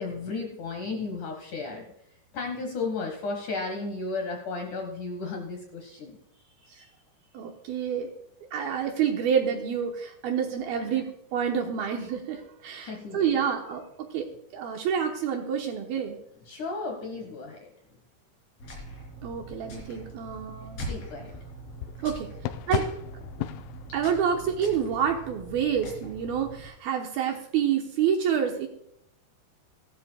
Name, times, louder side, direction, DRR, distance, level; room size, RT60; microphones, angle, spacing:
voice 1, 0.0-1.9 2.3-6.2 10.8-11.0 12.7-13.4 16.5-17.7 20.9-21.3, left 3 dB, 65° left, 3 dB, 2.1 m, -34 dB
voice 2, 7.3-8.1 8.5-13.8 14.1-14.3 14.5-16.2 19.2-20.9 22.0-22.3 22.7-22.9 23.9-28.7, right 8 dB, 70° right, 3 dB, 2.4 m, -28 dB
sound 1, 18.6-26.7, right 2 dB, 35° left, 4.0 m, -42 dB
sound 2, 21.0-25.1, left 13 dB, 85° left, 3.0 m, -36 dB
17.0 x 12.5 x 2.3 m, 0.77 s
omnidirectional pair, 5.3 m